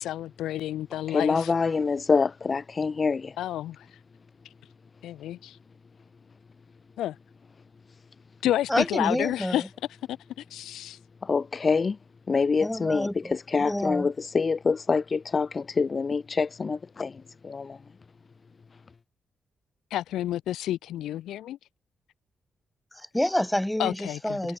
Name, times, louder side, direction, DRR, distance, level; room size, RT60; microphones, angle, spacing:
voice 1, 0.0-1.5 3.4-3.9 5.0-5.6 7.0-7.2 8.4-9.6 10.1-11.0 19.9-21.6 23.8-24.4, left 13 dB, 85° left, 3.0 m, -30 dB
voice 2, 1.1-3.3 11.2-12.0 12.3-17.8, left 4 dB, 45° left, 6.0 m, -26 dB
voice 3, 8.7-9.7 12.6-14.1 22.9-24.6, left 1 dB, 10° left, 6.9 m, -28 dB
supercardioid pair, 45°, 0 cm